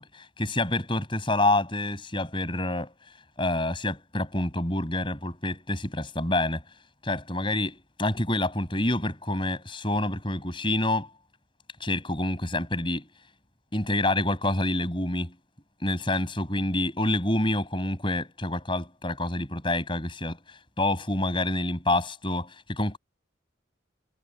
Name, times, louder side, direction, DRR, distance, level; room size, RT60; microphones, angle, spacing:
voice 1, 0.4-2.9 3.4-6.6 7.0-11.1 11.8-13.1 13.7-15.4 15.8-23.0, left 2 dB, 25° left, 6.9 m, -27 dB
head